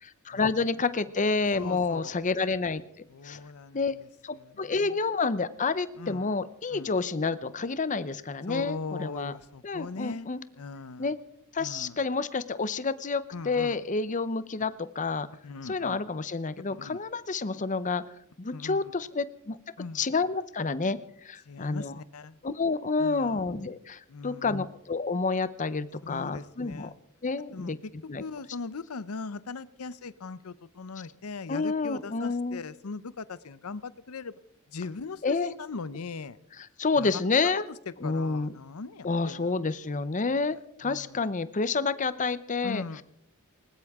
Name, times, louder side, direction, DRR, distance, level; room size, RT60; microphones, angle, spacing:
voice 1, 0.0-2.8 3.2-3.4 3.7-3.9 4.2-9.3 9.6-10.4 11.0-11.2 11.5-15.3 15.6-18.0 18.4-19.6 19.9-21.0 21.2-21.9 22.4-26.9 27.2-27.8 28.1-28.2 31.5-32.6 35.2-35.5 36.8-37.7 38.0-38.5 39.0-42.8, left 4 dB, 35° left, 14 dB, 0.7 m, -29 dB
voice 2, 1.6-2.1 3.1-4.1 4.4-5.0 6.0-6.4 6.7-6.9 8.5-10.3 10.6-11.1 11.6-12.0 13.3-13.8 15.4-16.0 16.7-17.0 18.5-18.9 19.8-20.1 21.4-22.4 23.0-23.4 24.1-24.6 26.0-26.9 27.5-27.9 28.2-34.3 34.7-36.4 37.0-37.1 37.4-39.5 40.8-41.3 42.6-43.0, left 4 dB, 75° left, 17 dB, 0.7 m, -40 dB
20.0 x 19.0 x 3.6 m, 0.71 s
head